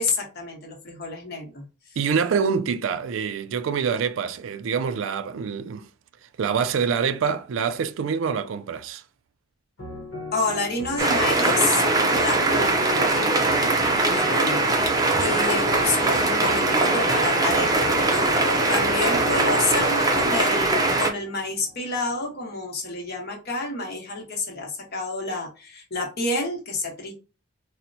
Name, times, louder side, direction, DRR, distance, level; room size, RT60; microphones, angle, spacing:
voice 1, 0.0-1.7 10.3-13.1 14.0-27.1, left 3 dB, 55° left, 1.1 m, -29 dB
voice 2, 2.0-5.9 6.2-9.0, right 6 dB, 75° right, 0.4 m, -26 dB
sound 1, 9.8-22.3, left 2 dB, 75° left, 1.0 m, -35 dB
sound 2, 11.0-21.1, right 2 dB, 20° right, 0.5 m, -21 dB
4.2 x 2.1 x 2.6 m
head